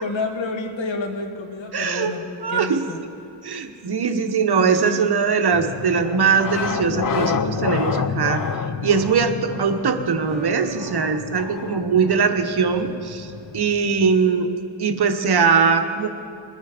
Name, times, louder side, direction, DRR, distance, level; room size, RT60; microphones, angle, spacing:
voice 1, 0.0-2.2 2.5-3.0 4.6-5.1, left 3 dB, 85° left, 3 dB, 1.7 m, -29 dB
voice 2, 1.7-2.1 2.4-2.8 3.4-8.4 8.8-13.3 13.5-14.5 14.8-16.1, right 5 dB, 60° right, 7 dB, 1.0 m, -21 dB
sound 1, 5.5-14.3, left 6 dB, 50° left, 0.6 m, -29 dB
sound 2, 9.5-9.6 10.3-13.2, right 5 dB, 25° right, 2.7 m, -38 dB
21.5 x 9.4 x 5.0 m, 2.5 s
wide cardioid pair, 120°, 45 cm